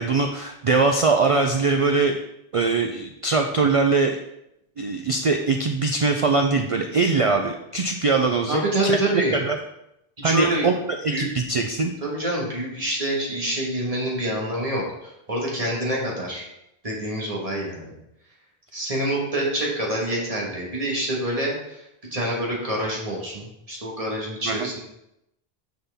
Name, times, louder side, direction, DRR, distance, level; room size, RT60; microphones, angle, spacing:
voice 1, 0.0-2.2 2.5-4.2 4.8-9.6 10.2-10.7 11.0-11.9 24.5-24.7, right 4 dB, 50° right, 4 dB, 0.4 m, -22 dB
voice 2, 8.5-9.4 10.2-10.7 11.1-11.3 12.0-16.4 16.8-17.9 18.7-21.8 22.1-24.8, right 1 dB, 35° right, -3 dB, 1.5 m, -26 dB
5.7 x 5.6 x 3.4 m, 0.83 s
omnidirectional pair, 1.1 m